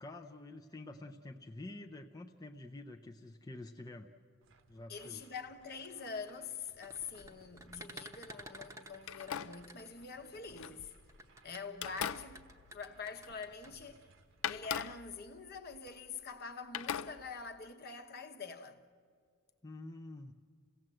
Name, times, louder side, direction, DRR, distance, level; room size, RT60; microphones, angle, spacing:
voice 1, 0.0-4.1 4.7-5.2 19.6-20.3, left 2 dB, 20° left, 0.6 m, -48 dB
sound 1, 4.4-15.1, right 3 dB, 60° right, 1.0 m, -66 dB
voice 2, 4.9-10.9 11.4-12.5 12.7-14.1 14.5-18.8, left 5 dB, 50° left, 1.1 m, -45 dB
sound 2, 5.7-10.4 11.1-13.7, right 1 dB, 15° right, 0.9 m, -52 dB
sound 3, 6.9-8.1 9.0-11.3 11.7-13.7 13.9-14.0 14.4-16.4 16.7-17.7, left 8 dB, 75° left, 0.5 m, -43 dB
27.5 x 17.0 x 7.7 m
head